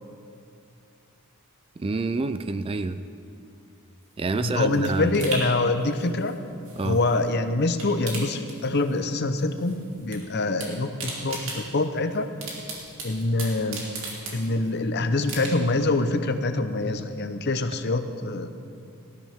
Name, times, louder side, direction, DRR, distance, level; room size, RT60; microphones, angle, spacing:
voice 1, 1.8-3.0 4.2-5.1 6.8-7.0, right 3 dB, 25° right, 11 dB, 0.4 m, -27 dB
sound 1, 4.0-7.3 7.6-9.1 9.4-10.2 10.4-14.8 15.2-15.9 16.3-16.4, right 3 dB, 60° right, 3.0 m, -37 dB
voice 2, 4.3-6.4 6.8-12.3 13.0-13.8 14.3-18.5, left 2 dB, 50° left, 9 dB, 0.7 m, -25 dB
19.5 x 13.5 x 3.6 m, 2.5 s
head